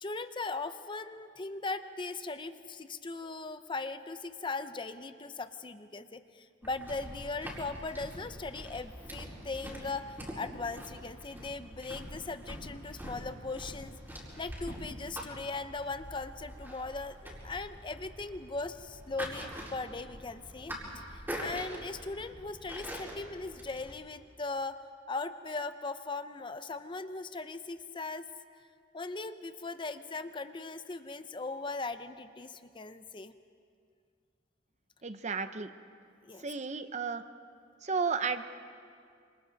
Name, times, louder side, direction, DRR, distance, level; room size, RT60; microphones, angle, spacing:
voice 1, 0.0-13.9 14.4-24.8 25.1-28.3 28.9-33.3 36.2-36.5, left 3 dB, 25° left, 10 dB, 0.7 m, -39 dB
sound 1, 6.6-23.9, equal, 10° right, 4.7 m, -44 dB
voice 2, 35.0-35.7 36.4-37.2 37.8-38.6, right 5 dB, 40° right, 10 dB, 0.8 m, -33 dB
27.5 x 27.0 x 4.1 m, 2.2 s
head